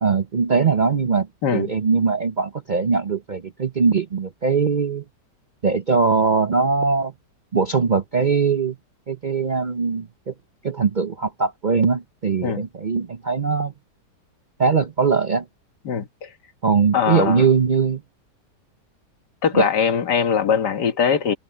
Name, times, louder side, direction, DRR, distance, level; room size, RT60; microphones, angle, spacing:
voice 1, 0.0-1.3 1.5-5.0 5.6-7.1 7.5-8.7 9.1-10.3 10.6-13.7 14.6-15.4 16.6-18.0 19.5-19.7, right 5 dB, 45° right, 0.6 m, -21 dB
voice 2, 1.4-1.7 12.4-12.7 15.9-16.3 16.9-17.5 19.4-21.4, left 7 dB, 75° left, 2.0 m, -21 dB
omnidirectional pair, 1.8 m